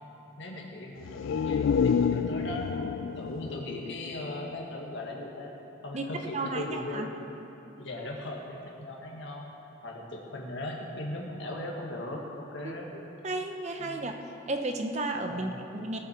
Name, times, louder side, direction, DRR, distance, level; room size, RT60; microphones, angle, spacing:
voice 1, 0.4-2.7 3.1-5.5 5.8-7.1 7.8-9.5 9.8-13.0 13.8-14.1 15.3-15.6, left 1 dB, 70° left, -1 dB, 1.7 m, -38 dB
sound 1, 1.0-4.7 5.1-5.2, left 6 dB, 85° left, 0.3 m, -29 dB
voice 2, 6.3-7.1 12.6-14.1 14.5-16.0, right 2 dB, 35° right, 4 dB, 0.7 m, -33 dB
18.5 x 7.4 x 4.4 m, 2.9 s
head